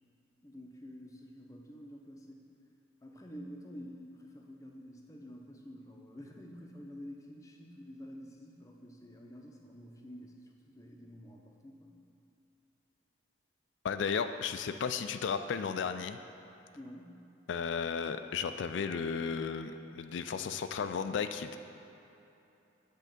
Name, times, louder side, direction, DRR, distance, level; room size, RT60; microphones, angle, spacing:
voice 1, 0.4-2.4 3.0-12.0 16.7-17.2, equal, 15° left, 1 dB, 0.6 m, -49 dB
voice 2, 13.8-16.2 17.5-21.6, left 6 dB, 80° left, 10 dB, 0.4 m, -34 dB
7.8 x 3.6 x 6.6 m, 2.9 s
head